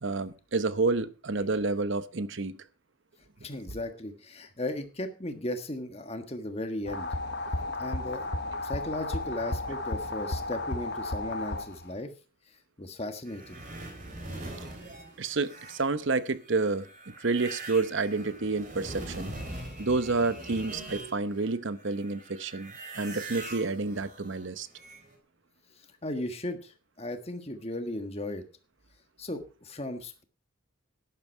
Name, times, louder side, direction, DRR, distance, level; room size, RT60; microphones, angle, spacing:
voice 1, 0.0-2.6 15.2-19.3 19.8-24.7, right 3 dB, 60° right, 0.8 m, -29 dB
voice 2, 3.4-7.1 7.8-8.3 8.6-12.1 12.8-13.6 19.5-19.6 26.0-28.4 29.2-30.2, left 1 dB, 30° left, 1.5 m, -36 dB
sound 1, 6.9-12.0, left 2 dB, 50° left, 1.3 m, -33 dB
sound 2, 13.3-21.5 21.8-25.1, right 2 dB, 35° right, 3.4 m, -43 dB
12.0 x 11.0 x 4.5 m
head